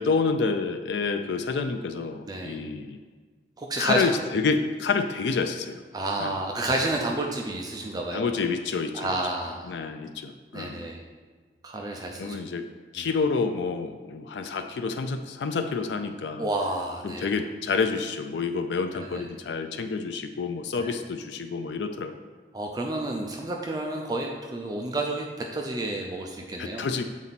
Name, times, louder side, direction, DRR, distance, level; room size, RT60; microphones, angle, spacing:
voice 1, 0.0-3.0 3.8-5.8 6.2-6.3 8.1-9.1 9.7-10.9 12.2-12.6 12.9-16.5 17.0-22.1 26.6-27.0, left 4 dB, 80° left, 7 dB, 0.4 m, -28 dB
voice 2, 2.3-2.6 3.6-4.0 5.9-8.3 8.9-9.8 10.5-11.0 11.6-12.4 12.9-13.1 16.4-17.3 18.9-19.2 20.8-20.9 22.5-26.9, right 2 dB, 20° right, 1 dB, 0.5 m, -30 dB
7.2 x 4.2 x 4.1 m, 1.5 s
head